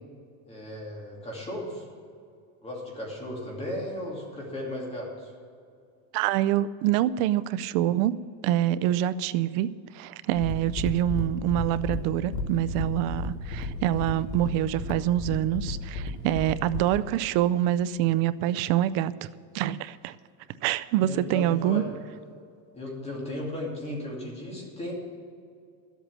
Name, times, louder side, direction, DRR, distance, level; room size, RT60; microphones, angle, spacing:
voice 1, 0.5-1.9 2.6-5.3 21.1-21.9 22.7-24.9, left 1 dB, 15° left, -2 dB, 2.6 m, -35 dB
voice 2, 6.1-8.1 8.4-19.3 19.5-20.1 20.6-21.8, right 13 dB, 55° right, 15 dB, 0.5 m, -26 dB
sound 1, 10.3-17.0, left 3 dB, 55° left, 2.0 m, -33 dB
12.5 x 8.2 x 7.4 m, 2.3 s
cardioid pair, 170°, 41 cm